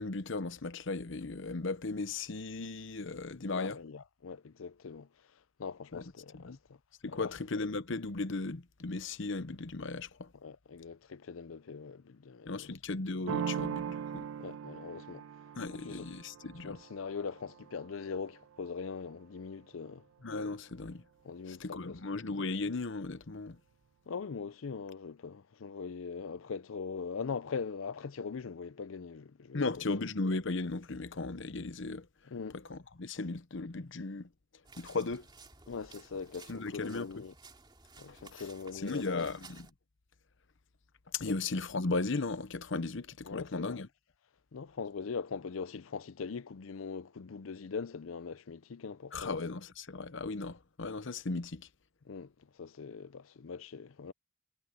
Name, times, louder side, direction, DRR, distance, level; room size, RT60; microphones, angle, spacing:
voice 1, 0.0-3.8 5.9-6.0 6.3-6.6 7.0-10.3 12.5-14.3 15.5-16.8 20.2-21.0 21.5-23.6 29.5-32.1 32.5-34.3 34.8-35.3 36.5-37.2 38.1-38.4 38.7-39.7 41.1-43.9 49.1-51.7, left 3 dB, 65° left, 0.9 m, -36 dB
voice 2, 3.5-5.1 5.6-6.8 7.1-7.3 10.4-12.7 14.4-15.2 15.7-16.1 16.6-20.1 21.2-22.0 24.1-30.0 32.3-32.6 35.7-37.3 38.0-39.2 41.2-41.3 43.3-43.8 44.5-49.4 52.0-54.1, left 5 dB, 85° left, 0.6 m, -41 dB
sound 1, 13.3-18.8, right 7 dB, 70° right, 0.3 m, -40 dB
sound 2, 34.6-39.7, right 4 dB, 25° right, 2.8 m, -55 dB
head